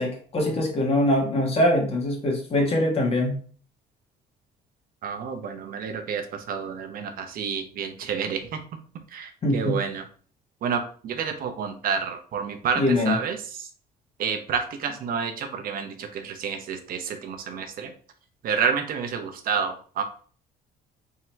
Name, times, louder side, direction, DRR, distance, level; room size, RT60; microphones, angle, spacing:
voice 1, 0.0-3.3 9.4-9.8 12.7-13.2, left 1 dB, 35° left, 0 dB, 1.5 m, -23 dB
voice 2, 5.0-8.6 9.1-10.0 10.6-13.7 14.2-17.9 18.4-20.0, right 6 dB, 60° right, 6 dB, 0.9 m, -29 dB
3.7 x 2.9 x 4.4 m, 0.43 s
cardioid pair, 110°, 17 cm